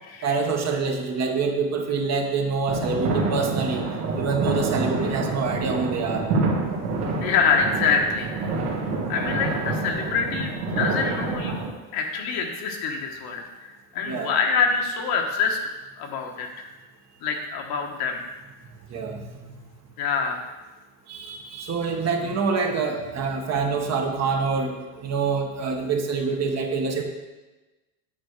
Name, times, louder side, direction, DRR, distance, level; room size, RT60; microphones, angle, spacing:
voice 1, 0.2-3.8 4.2-6.3 14.1-14.3 18.9-19.5 21.1-27.0, right 4 dB, 35° right, 3 dB, 1.1 m, -26 dB
sound 1, 2.7-11.7, right 3 dB, 70° right, 1.9 m, -27 dB
voice 2, 7.2-8.3 9.1-11.7 11.9-15.6 16.0-16.7 17.2-18.2 20.0-20.4, left 5 dB, 55° left, 2 dB, 1.3 m, -25 dB
9.0 x 3.4 x 6.4 m, 1.1 s
supercardioid pair, 115°, 44 cm